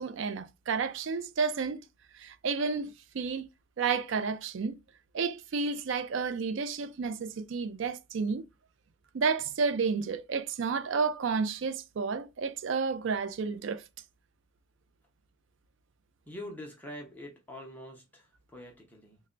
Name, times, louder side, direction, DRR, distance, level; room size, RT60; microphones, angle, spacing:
voice 1, 0.0-1.8 2.2-3.5 3.8-4.8 5.1-8.4 9.1-13.8, right 5 dB, 65° right, 0.4 m, -31 dB
voice 2, 16.3-19.2, left 1 dB, 10° left, 0.6 m, -45 dB
3.3 x 2.1 x 3.7 m
head